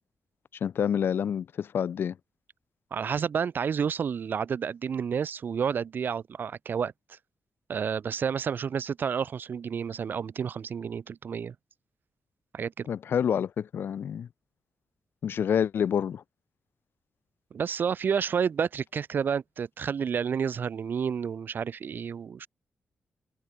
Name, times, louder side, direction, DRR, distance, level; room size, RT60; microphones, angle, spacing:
voice 1, 0.6-2.2 12.9-14.3 15.2-16.2, left 8 dB, 65° left, 0.6 m, -28 dB
voice 2, 2.9-6.9 7.7-11.5 12.5-12.9 17.5-22.5, right 7 dB, 55° right, 1.9 m, -30 dB
wide cardioid pair, 140°, 4 cm